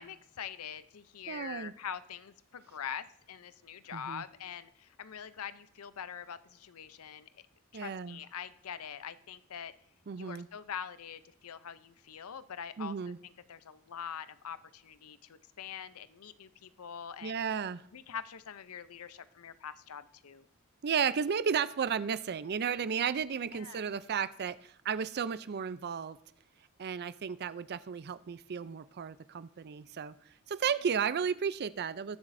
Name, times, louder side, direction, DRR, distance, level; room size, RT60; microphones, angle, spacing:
voice 1, 0.0-7.5 7.7-9.7 10.2-17.4 17.9-20.4 23.5-23.8, left 8 dB, 80° left, 14 dB, 0.6 m, -44 dB
voice 2, 1.3-1.7 3.9-4.2 7.7-8.2 10.1-10.5 12.8-13.2 17.2-17.8 20.8-26.2 26.8-30.2 30.5-32.2, right 7 dB, 50° right, 15 dB, 0.4 m, -33 dB
19.5 x 7.2 x 2.6 m, 0.68 s
head